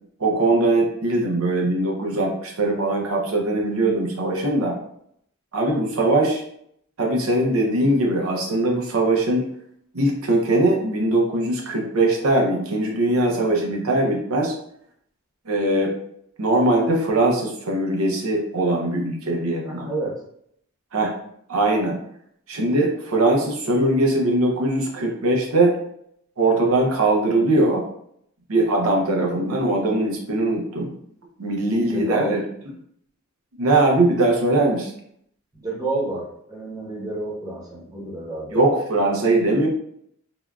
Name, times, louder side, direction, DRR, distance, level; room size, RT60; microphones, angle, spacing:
voice 1, 0.2-4.8 5.5-6.4 7.0-9.5 9.9-14.5 15.5-15.9 16.4-19.9 20.9-21.2 21.5-22.0 22.5-25.8 26.4-27.8 28.5-30.9 31.4-32.4 33.6-34.9 38.5-39.7, right 2 dB, 90° right, 0 dB, 0.6 m, -21 dB
voice 2, 19.6-20.2 31.9-32.4 35.5-38.6, right 2 dB, 15° right, -5 dB, 0.8 m, -29 dB
3.5 x 2.4 x 2.2 m, 0.70 s
head